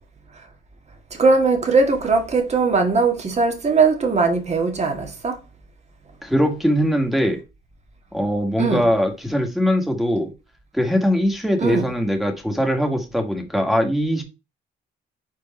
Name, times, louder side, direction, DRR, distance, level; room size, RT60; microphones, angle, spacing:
voice 1, 1.2-5.4 8.6-8.9 11.6-11.9, right 4 dB, 35° right, 1.8 m, -19 dB
voice 2, 6.2-7.4 8.1-10.3 10.7-14.2, equal, ahead, 1.9 m, -21 dB
4.7 x 4.6 x 4.4 m
cardioid pair, 90°, 20 cm